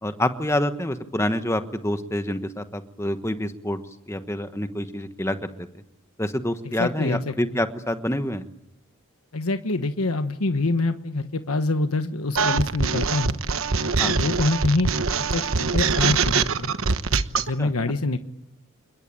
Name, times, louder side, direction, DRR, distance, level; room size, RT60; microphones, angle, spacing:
voice 1, 0.0-3.8 4.1-5.7 6.2-8.4 14.0-14.2 17.6-17.7, left 1 dB, 10° left, 9 dB, 1.2 m, -27 dB
voice 2, 6.8-7.3 9.3-13.3 14.0-14.9 15.3-16.7 17.4-18.2, left 2 dB, 85° left, 8 dB, 1.3 m, -25 dB
sound 1, 12.3-17.5, right 4 dB, 70° right, 1.1 m, -23 dB
29.0 x 21.0 x 8.8 m, 0.86 s
head